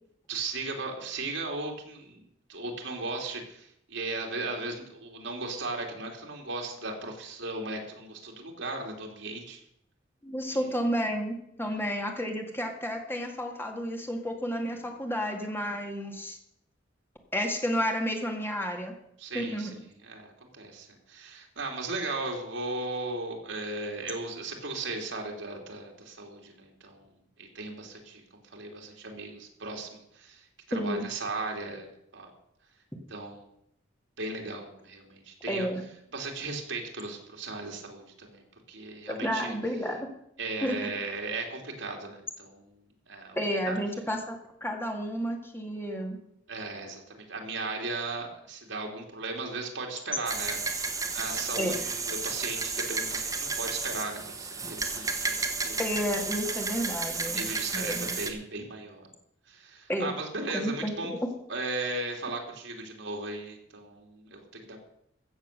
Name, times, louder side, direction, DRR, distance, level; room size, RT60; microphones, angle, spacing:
voice 1, 0.3-9.6 10.6-10.7 11.7-11.8 19.2-32.3 33.1-33.5 34.2-35.7 36.1-39.5 40.4-43.4 43.7-43.8 46.5-50.8 51.1-55.8 57.2-59.1 59.5-61.1 61.5-64.8, right 3 dB, 70° right, 1 dB, 2.9 m, -37 dB
voice 2, 10.2-16.4 17.3-18.9 19.3-19.7 30.7-31.1 35.5-35.8 39.2-40.1 40.6-40.9 43.4-46.2 51.5-51.7 55.8-57.4 57.7-58.1 59.9-60.1 60.5-61.2, equal, 10° left, 2 dB, 2.0 m, -31 dB
sound 1, 50.3-58.3, right 4 dB, 20° right, 1.3 m, -32 dB
15.0 x 7.3 x 6.7 m, 0.75 s
head